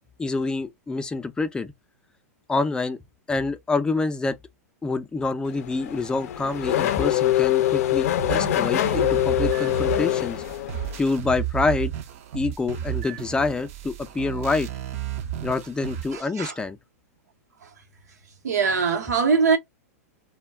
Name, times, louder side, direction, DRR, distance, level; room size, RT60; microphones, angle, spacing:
voice 1, 0.2-1.7 2.5-3.0 3.3-4.4 4.8-10.4 11.0-11.9 12.3-14.7 15.4-16.8, left 3 dB, 10° left, 0.4 m, -26 dB
Race car auto racing / Accelerating revving vroom, 5.5-11.0, left 13 dB, 70° left, 0.4 m, -24 dB
sound 1, 8.2-16.2, right 11 dB, 60° right, 0.6 m, -33 dB
voice 2, 16.1-16.5 18.4-19.6, right 5 dB, 90° right, 0.8 m, -22 dB
2.2 x 2.2 x 3.2 m
hypercardioid pair, 115°, 9 cm